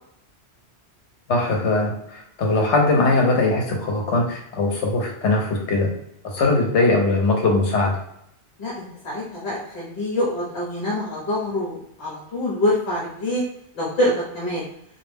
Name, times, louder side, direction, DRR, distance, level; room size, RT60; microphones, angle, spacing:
voice 1, 1.3-5.9 6.2-8.0, left 2 dB, 80° left, 0 dB, 1.0 m, -20 dB
voice 2, 8.6-13.4 13.7-14.6, left 1 dB, 65° left, -5 dB, 1.0 m, -25 dB
2.4 x 2.1 x 3.3 m, 0.75 s
omnidirectional pair, 1.2 m